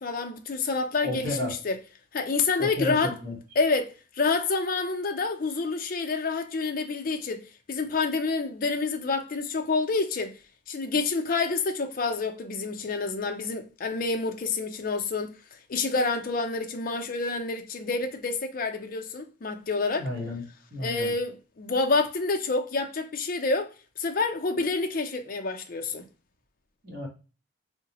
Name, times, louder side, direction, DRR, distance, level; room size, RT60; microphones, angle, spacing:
voice 1, 0.0-1.8 2.1-3.1 3.6-10.3 10.7-15.3 15.7-20.1 20.8-23.7 24.0-26.1, left 3 dB, 45° left, 0.5 m, -28 dB
voice 2, 1.0-1.5 2.6-3.3 20.0-20.4 20.7-21.1 26.8-27.1, left 2 dB, 55° right, 1.2 m, -32 dB
3.8 x 2.1 x 2.8 m
head